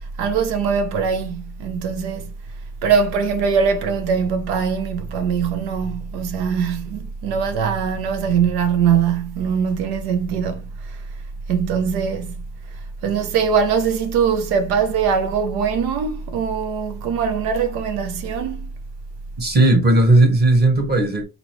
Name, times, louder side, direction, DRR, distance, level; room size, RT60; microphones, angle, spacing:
voice 1, 0.0-2.3 2.8-11.0 11.5-18.7, right 6 dB, 80° right, 0.8 m, -22 dB
voice 2, 19.4-21.2, right 2 dB, 25° right, 1.3 m, -15 dB
4.0 x 2.9 x 3.0 m
cardioid pair, 140°, 38 cm